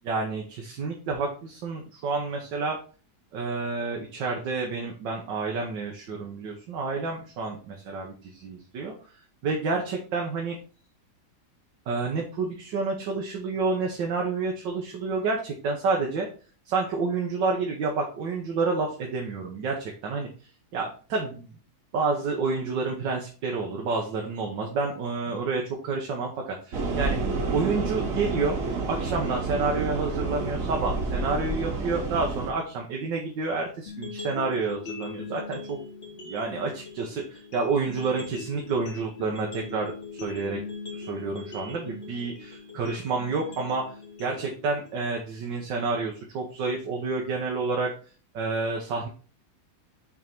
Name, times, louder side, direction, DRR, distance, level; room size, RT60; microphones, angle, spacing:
voice 1, 0.0-2.8 3.3-9.0 9.4-10.6 11.9-16.3 16.6-20.3 20.7-21.5 21.9-27.2 27.5-28.6 28.9-35.8 36.2-39.9 40.2-40.6 40.9-43.9 44.2-47.9 48.3-49.1, right 4 dB, 75° right, 0 dB, 1.7 m, -29 dB
sound 1, 26.7-32.5, right 3 dB, 50° right, 1.4 m, -29 dB
sound 2, 33.9-45.9, left 4 dB, 40° left, 1.6 m, -41 dB
6.4 x 3.6 x 4.4 m, 0.39 s
omnidirectional pair, 2.0 m